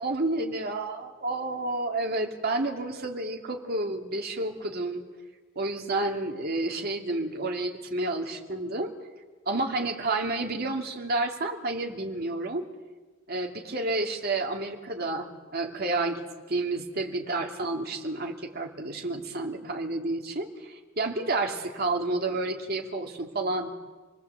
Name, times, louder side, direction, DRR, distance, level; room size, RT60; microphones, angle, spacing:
voice 1, 0.0-5.0 5.6-8.9 9.5-12.7 13.3-23.7, right 2 dB, 50° right, 3 dB, 2.7 m, -30 dB
28.0 x 20.0 x 8.3 m, 1.4 s
head